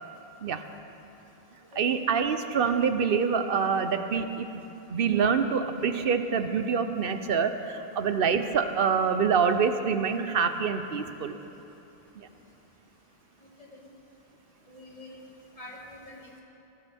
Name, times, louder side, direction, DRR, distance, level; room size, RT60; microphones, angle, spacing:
voice 1, 1.7-4.6 4.9-11.4 12.1-12.3, right 6 dB, 60° right, 9 dB, 0.9 m, -26 dB
voice 2, 14.7-15.3 15.6-16.4, left 1 dB, 35° left, -3 dB, 2.4 m, -46 dB
19.5 x 17.0 x 3.6 m, 2.9 s
omnidirectional pair, 1.1 m